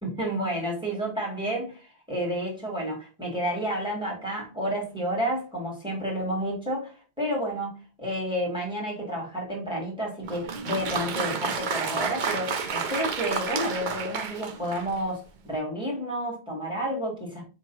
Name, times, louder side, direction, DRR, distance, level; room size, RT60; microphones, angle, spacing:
voice 1, 0.0-17.5, equal, 5° right, -3 dB, 2.0 m, -30 dB
Applause, 10.2-15.1, right 5 dB, 55° right, 0.7 m, -31 dB
4.7 x 3.9 x 2.7 m, 0.34 s
omnidirectional pair, 1.1 m